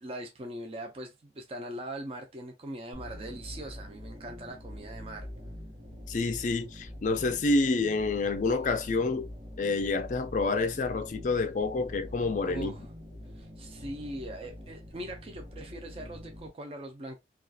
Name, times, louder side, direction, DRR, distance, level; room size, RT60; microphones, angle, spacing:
voice 1, 0.0-5.3 12.4-12.9 13.3-17.2, right 1 dB, 30° right, 0.4 m, -41 dB
sound 1, 2.9-16.5, left 1 dB, 55° right, 1.2 m, -45 dB
voice 2, 6.1-9.3 9.6-12.7, left 3 dB, 45° left, 0.4 m, -28 dB
2.7 x 2.3 x 2.3 m
head